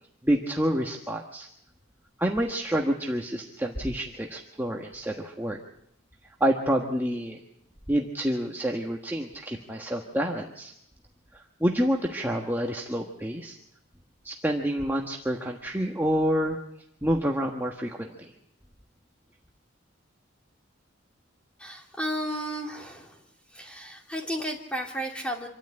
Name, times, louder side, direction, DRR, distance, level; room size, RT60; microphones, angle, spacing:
voice 1, 0.2-1.5 2.2-5.6 6.4-7.4 7.9-10.7 11.3-13.6 14.2-16.6 17.0-18.3, equal, 10° right, 0 dB, 1.4 m, -28 dB
voice 2, 21.6-23.2 23.5-25.5, equal, 5° left, 1 dB, 2.7 m, -33 dB
26.0 x 13.5 x 8.9 m, 0.76 s
head